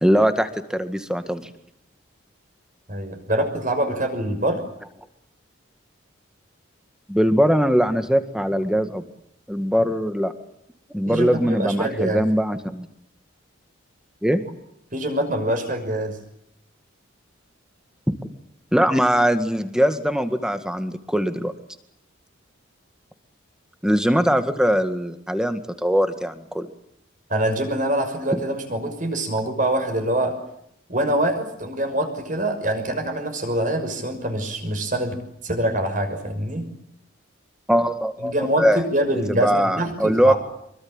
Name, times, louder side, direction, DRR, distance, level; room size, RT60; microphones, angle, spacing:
voice 1, 0.0-1.5 7.1-9.0 9.5-10.3 10.9-12.9 14.2-14.4 18.7-21.5 23.8-26.7 37.7-38.8 39.3-40.3, equal, 5° right, 8 dB, 1.9 m, -21 dB
voice 2, 2.9-4.6 11.1-12.2 14.9-16.2 27.3-30.4 30.9-35.2 35.4-36.7 38.2-38.7 38.9-40.3, right 1 dB, 40° right, 6 dB, 6.2 m, -24 dB
25.5 x 23.5 x 9.0 m, 0.76 s
head